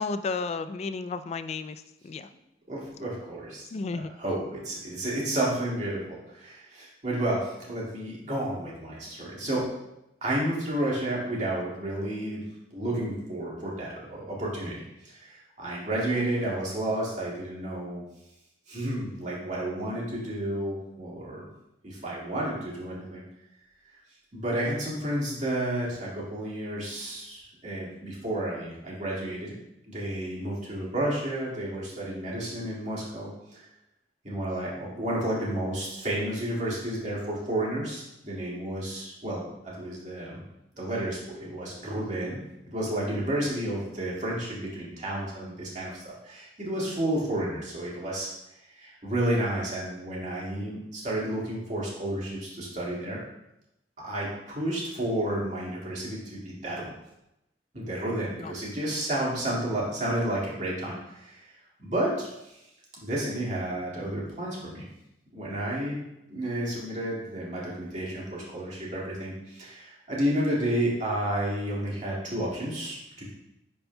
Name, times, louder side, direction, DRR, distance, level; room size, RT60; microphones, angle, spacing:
voice 1, 0.0-2.3 3.7-4.1 58.4-58.5, left 4 dB, 40° left, 11 dB, 0.3 m, -33 dB
voice 2, 2.7-3.7 3.9-9.7 10.2-12.4 12.7-14.8 15.0-18.0 18.7-21.5 21.8-23.2 24.3-29.6 29.9-33.3 34.2-40.4 40.7-42.4 42.7-48.3 48.8-53.2 54.0-56.9 57.7-61.5 61.8-62.5 63.0-64.9 65.3-66.0 66.3-73.3, right 1 dB, 45° right, -5 dB, 1.9 m, -31 dB
10.5 x 4.3 x 2.2 m, 0.88 s
head